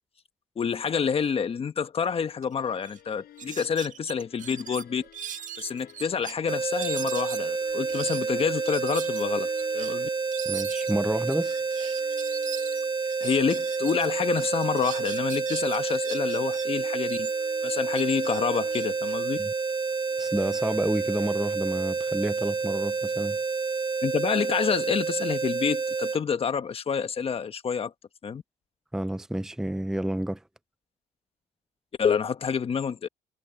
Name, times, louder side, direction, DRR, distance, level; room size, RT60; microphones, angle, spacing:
voice 1, 0.6-5.0 5.6-9.5 9.7-10.1 13.2-17.3 17.6-19.4 24.0-27.9 28.2-28.4 32.0-33.1, left 6 dB, 35° left, 1.2 m, -28 dB
sound 1, 2.4-2.5 2.8-3.0 3.4-6.3 6.8-14.1 14.4-16.7 17.0-19.9, right 9 dB, 50° right, 1.6 m, -40 dB
sound 2, 2.6-6.2 6.5-10.4 10.9-15.3 15.6-19.2 20.0-21.5, left 12 dB, 65° left, 6.6 m, -52 dB
sound 3, 6.5-26.2, right 5 dB, 25° right, 2.6 m, -29 dB
voice 2, 10.5-11.6 19.4-19.5 20.2-23.4 28.9-30.4, right 1 dB, 5° right, 0.6 m, -29 dB
cardioid pair, 110°, 17 cm